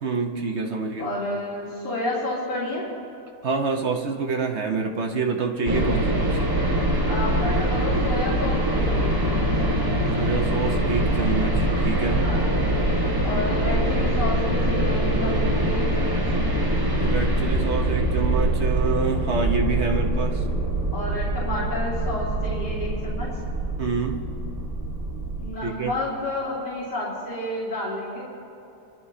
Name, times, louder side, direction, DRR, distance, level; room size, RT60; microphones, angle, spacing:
voice 1, 0.0-1.1 3.4-6.5 10.2-12.3 17.0-20.4 23.8-24.3 25.6-25.9, right 4 dB, 50° right, 2 dB, 1.1 m, -27 dB
voice 2, 1.0-2.8 7.1-9.5 12.2-12.7 13.2-16.2 20.9-23.3 25.4-28.2, left 1 dB, 85° left, -10 dB, 3.8 m, -30 dB
sound 1, 5.7-25.5, right 1 dB, 15° right, 1.2 m, -24 dB
26.0 x 12.5 x 2.8 m, 2.8 s
omnidirectional pair, 1.7 m